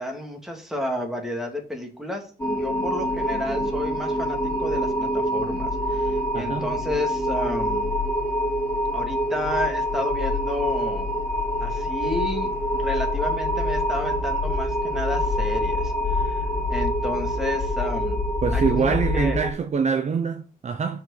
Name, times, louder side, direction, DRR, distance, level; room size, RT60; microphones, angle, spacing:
voice 1, 0.0-7.9 8.9-11.2 11.6-18.2 18.5-19.4, left 1 dB, ahead, 2.4 m, -31 dB
sound 1, 2.4-19.5, equal, 20° left, 3.5 m, -25 dB
voice 2, 6.3-6.7 18.4-21.0, right 5 dB, 45° right, 0.8 m, -24 dB
5.9 x 5.3 x 6.5 m
cardioid pair, 120°, 16 cm